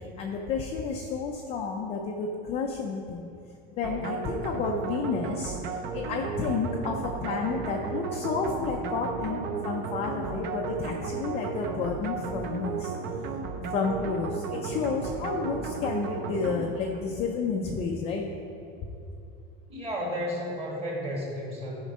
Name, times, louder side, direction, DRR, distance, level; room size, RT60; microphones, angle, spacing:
voice 1, 0.2-3.3 3.8-5.6 5.9-12.9 13.7-18.3, left 5 dB, 20° left, 0 dB, 0.4 m, -31 dB
sound 1, 3.8-17.1, right 5 dB, 35° right, 0.6 m, -34 dB
voice 2, 19.7-21.8, equal, 20° right, -3 dB, 1.7 m, -32 dB
12.5 x 5.1 x 5.3 m, 2.6 s
cardioid pair, 175°, 31 cm